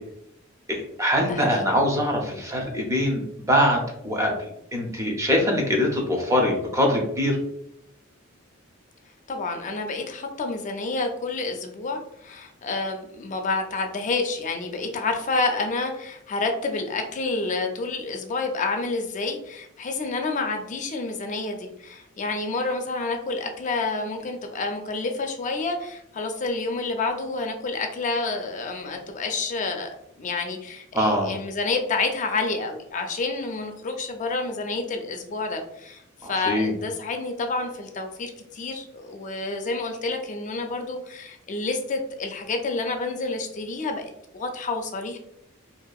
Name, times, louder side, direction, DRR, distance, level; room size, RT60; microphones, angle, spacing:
voice 1, 0.7-4.3 4.7-7.4 30.9-31.3 36.2-36.7, equal, 15° right, 0 dB, 0.5 m, -23 dB
voice 2, 1.3-1.8 9.3-29.9 30.2-45.2, left 3 dB, 35° left, 4 dB, 0.4 m, -29 dB
2.6 x 2.3 x 2.3 m, 0.76 s
head